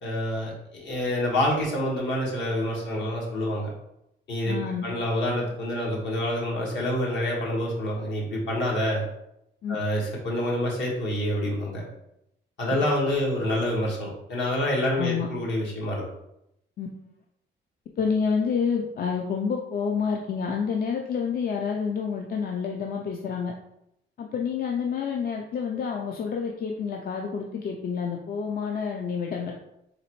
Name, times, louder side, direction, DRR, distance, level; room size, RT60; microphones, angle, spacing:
voice 1, 0.0-3.7 4.3-9.0 9.7-11.8 12.6-16.0, left 1 dB, 65° left, -3 dB, 1.5 m, -27 dB
voice 2, 4.4-4.9 9.6-9.8 15.0-15.3 16.8-16.9 18.0-23.5 24.2-29.5, left 6 dB, 50° left, 1 dB, 0.5 m, -28 dB
3.9 x 3.2 x 3.0 m, 0.81 s
cardioid pair, 90°, 20 cm